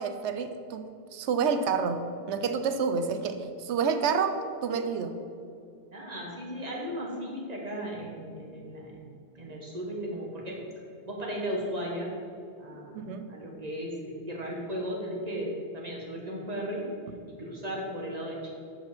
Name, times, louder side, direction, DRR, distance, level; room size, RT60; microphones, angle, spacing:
voice 1, 0.0-5.2 12.9-13.3, right 5 dB, 80° right, 8 dB, 0.9 m, -29 dB
voice 2, 5.9-8.9 9.3-10.6 11.1-12.1 12.6-16.9 17.3-18.5, equal, 35° right, -2 dB, 1.5 m, -36 dB
6.7 x 5.2 x 5.9 m, 2.4 s
omnidirectional pair, 1.2 m